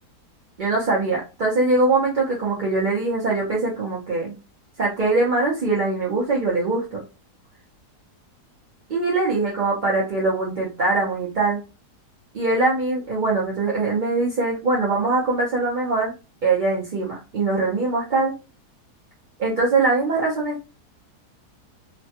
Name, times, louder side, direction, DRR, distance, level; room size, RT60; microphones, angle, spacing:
voice 1, 0.6-4.3 4.8-7.0 8.9-11.6 12.3-16.1 16.4-18.3 19.4-20.6, right 3 dB, 50° right, -5 dB, 0.6 m, -22 dB
3.1 x 2.2 x 2.8 m, 0.30 s
omnidirectional pair, 1.8 m